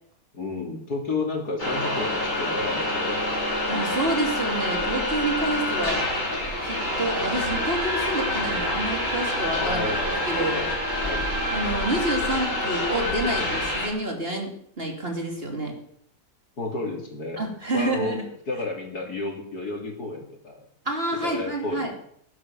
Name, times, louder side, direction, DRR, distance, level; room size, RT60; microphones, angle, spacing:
voice 1, 0.3-3.4 3.6-3.8 5.6-5.8 9.6-10.7 11.0-11.3 13.4-13.6 16.6-17.4 17.7-18.2 18.5-20.7 21.2-22.0, left 3 dB, 65° left, 2 dB, 3.4 m, -32 dB
sound 1, 1.6-13.9, left 1 dB, 25° left, 5.4 m, -27 dB
voice 2, 3.7-6.0 6.6-9.9 10.2-10.6 11.5-14.5 14.8-15.8 17.4-18.2 20.8-21.9, right 1 dB, 35° right, 2 dB, 3.1 m, -28 dB
17.0 x 9.9 x 7.0 m, 0.69 s
omnidirectional pair, 1.7 m